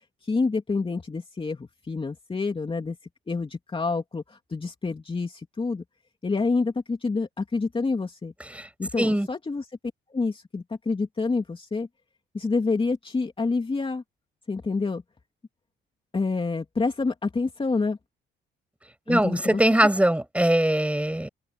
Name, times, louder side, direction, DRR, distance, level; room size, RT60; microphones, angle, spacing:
voice 1, 0.2-3.0 3.3-5.8 6.2-8.3 8.8-9.7 10.1-11.9 12.3-14.0 14.5-15.0 16.1-18.0 19.1-19.6, left 4 dB, 25° left, 2.9 m, -27 dB
voice 2, 19.1-21.3, right 1 dB, 5° right, 6.3 m, -21 dB
cardioid pair, 90°, 20 cm